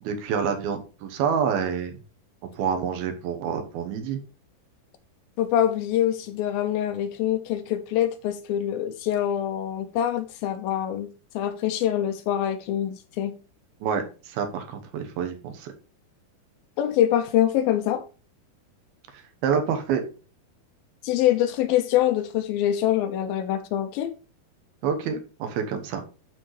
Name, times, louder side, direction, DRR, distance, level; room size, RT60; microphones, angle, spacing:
voice 1, 0.0-2.0 2.6-4.2 13.8-15.7 19.1-20.0 24.8-26.0, right 7 dB, 75° right, 2.9 m, -27 dB
voice 2, 5.4-13.4 16.8-18.0 21.0-24.2, left 11 dB, 80° left, 2.3 m, -25 dB
12.0 x 4.3 x 3.2 m
omnidirectional pair, 4.5 m